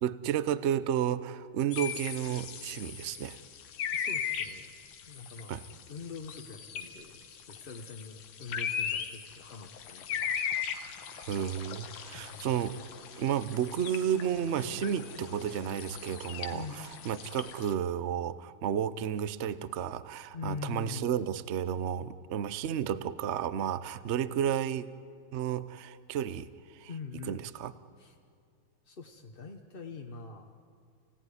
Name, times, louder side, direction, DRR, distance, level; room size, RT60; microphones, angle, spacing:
voice 1, 0.0-3.4 5.5-5.6 11.2-12.8 13.2-24.9 25.3-26.9 27.3-27.7, right 9 dB, 65° right, 15 dB, 0.6 m, -32 dB
sound 1, 1.7-17.7, left 8 dB, 90° left, 2.1 m, -39 dB
voice 2, 3.9-4.7 5.1-5.5 5.9-10.4 12.2-12.5 16.5-16.8 20.3-21.1 26.9-27.4 28.0-28.1 28.8-30.5, left 5 dB, 35° left, 2 dB, 1.0 m, -43 dB
sound 2, 12.3-17.9, left 2 dB, 70° left, 3.1 m, -51 dB
30.0 x 17.0 x 9.8 m, 2.3 s
omnidirectional pair, 2.2 m